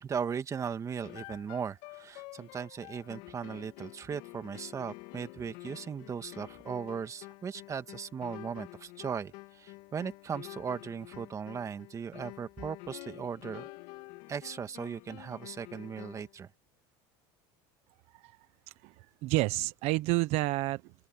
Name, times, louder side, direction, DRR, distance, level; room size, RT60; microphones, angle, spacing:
voice 1, 0.0-13.7 14.3-16.5, right 6 dB, 25° right, 1.9 m, -38 dB
sound 1, 1.0-16.3, left 23 dB, 75° left, 2.7 m, -49 dB
voice 2, 18.8-20.9, right 19 dB, 65° right, 1.1 m, -30 dB
open air
supercardioid pair, 125°, 12 cm